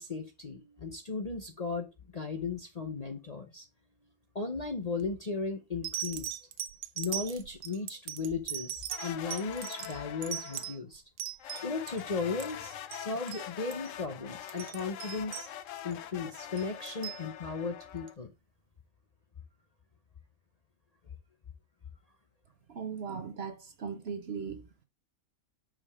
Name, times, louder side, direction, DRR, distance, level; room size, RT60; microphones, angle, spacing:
voice 1, 0.0-3.7 4.3-6.4 7.0-11.0 11.6-15.5 15.8-18.3, left 4 dB, 35° left, 0.7 m, -36 dB
sound 1, 5.0-5.3 5.8-12.0 12.3-13.0 13.3-13.4 13.7-13.9 14.3-15.9 16.6-17.2 18.1-18.2, right 11 dB, 85° right, 1.3 m, -39 dB
sound 2, 8.9-10.8 11.4-18.1, left 11 dB, 70° left, 0.9 m, -44 dB
voice 2, 22.7-24.7, right 6 dB, 55° right, 0.9 m, -38 dB
5.5 x 5.0 x 4.8 m
omnidirectional pair, 1.5 m